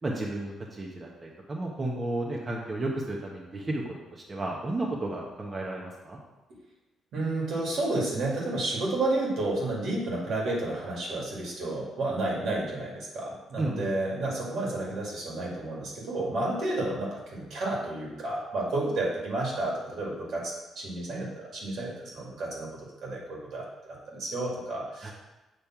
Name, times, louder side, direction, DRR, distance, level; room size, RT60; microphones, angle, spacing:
voice 1, 0.0-6.2 13.6-13.9 25.0-25.1, right 2 dB, 30° right, -2 dB, 1.0 m, -33 dB
voice 2, 7.1-22.7 23.0-25.1, right 2 dB, 70° right, -3 dB, 2.2 m, -31 dB
7.1 x 3.2 x 5.9 m, 1.1 s
cardioid pair, 90°, 0 cm